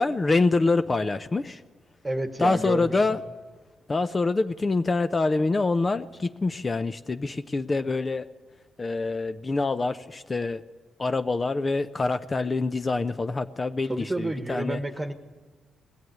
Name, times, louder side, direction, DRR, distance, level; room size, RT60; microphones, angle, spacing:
voice 1, 0.0-1.6 2.4-3.2 3.9-8.3 8.8-10.6 11.0-14.8, left 3 dB, 25° left, 11 dB, 0.6 m, -25 dB
voice 2, 2.0-3.2 13.9-15.1, right 1 dB, 15° right, 9 dB, 1.4 m, -30 dB
20.0 x 16.0 x 9.3 m, 1.3 s
cardioid pair, 120°, 0 cm